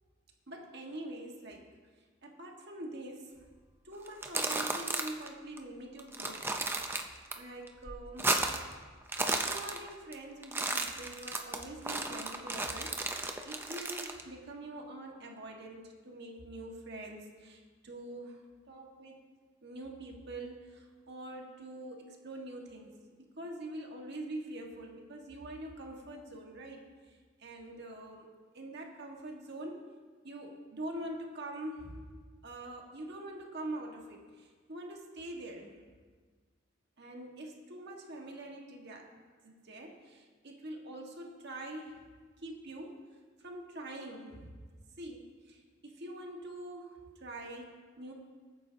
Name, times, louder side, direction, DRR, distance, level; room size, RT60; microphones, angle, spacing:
voice 1, 0.5-1.7 2.2-3.5 3.8-7.0 7.3-8.6 9.2-13.2 13.4-18.4 18.7-19.2 19.6-22.9 23.4-28.3 28.5-29.9 30.2-32.0 32.4-35.8 37.0-42.1 42.4-43.0 43.4-44.6 45.0-48.1, right 1 dB, 55° right, 0 dB, 1.7 m, -45 dB
sound 1, 4.1-5.3 5.6-5.7 6.0-7.3 7.7-8.7 9.0-10.1 10.4-14.2, right 2 dB, 10° right, 0.7 m, -34 dB
21.0 x 9.5 x 2.8 m, 1.5 s
head